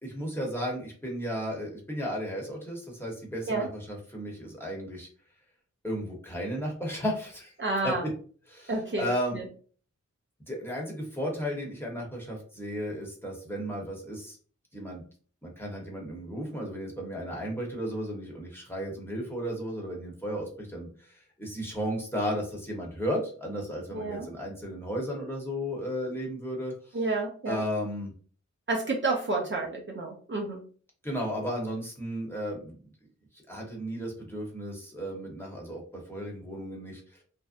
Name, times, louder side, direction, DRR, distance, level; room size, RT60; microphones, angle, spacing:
voice 1, 0.0-5.1 5.8-7.5 7.8-7.9 8.5-9.4 10.5-14.4 14.7-15.0 15.4-27.0 27.5-28.1 31.0-32.8 33.5-37.0, equal, 5° left, -2 dB, 1.0 m, -34 dB
voice 2, 7.6-8.1 8.7-9.5 23.9-24.3 26.9-27.6 28.7-30.6, right 3 dB, 40° right, -1 dB, 0.6 m, -30 dB
2.5 x 2.1 x 2.5 m, 0.42 s
wide cardioid pair, 55°, 30 cm